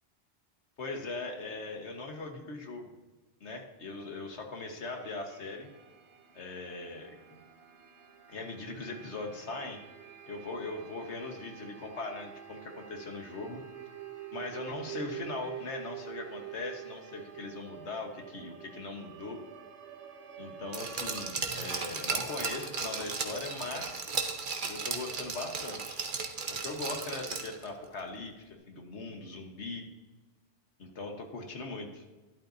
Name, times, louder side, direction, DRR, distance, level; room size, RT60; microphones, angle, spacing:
voice 1, 0.8-2.9 3.4-5.7 6.3-7.4 8.3-9.8 10.3-13.6 14.3-19.4 20.4-24.0 24.7-26.0 26.5-28.3 28.7-29.8 30.8-32.0, left 3 dB, 85° left, 3 dB, 1.7 m, -40 dB
sound 1, 4.9-21.3, right 10 dB, 85° right, 1.1 m, -47 dB
Glass, 20.7-27.7 28.0-28.1, right 4 dB, 50° right, 1.0 m, -35 dB
12.5 x 11.0 x 2.7 m, 1.2 s
omnidirectional pair, 1.1 m